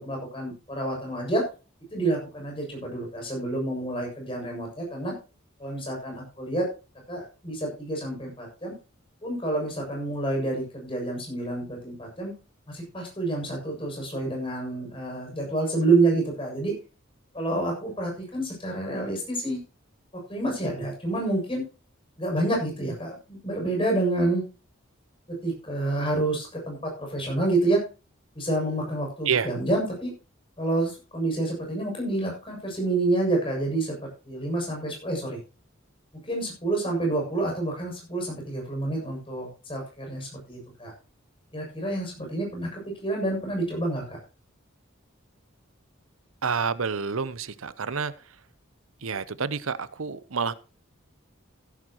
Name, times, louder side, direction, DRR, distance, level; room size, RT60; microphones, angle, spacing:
voice 1, 0.0-1.4 1.9-5.1 5.6-6.7 7.1-8.7 9.2-12.3 12.7-16.8 17.3-19.6 20.1-21.6 22.2-24.4 25.3-27.8 28.3-30.1 30.6-35.4 36.3-40.9 41.5-44.2, right 2 dB, 25° left, 0 dB, 7.2 m, -28 dB
voice 2, 46.4-48.1 49.0-50.5, right 6 dB, 80° right, 16 dB, 0.8 m, -28 dB
16.5 x 11.0 x 3.0 m, 0.32 s
head